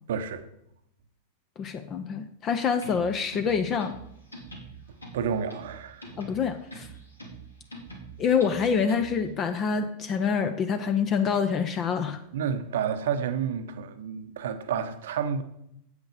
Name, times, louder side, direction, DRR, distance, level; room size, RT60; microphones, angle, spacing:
voice 1, 0.1-0.5 5.1-6.0 12.3-15.4, right 7 dB, 60° right, 0.8 m, -30 dB
voice 2, 1.6-3.9 6.2-6.9 8.2-12.2, left 6 dB, 30° left, 0.7 m, -26 dB
sound 1, 2.7-9.3, right 2 dB, 80° left, 2.3 m, -45 dB
8.3 x 8.2 x 5.0 m
figure-of-eight pair, 90°, 0 cm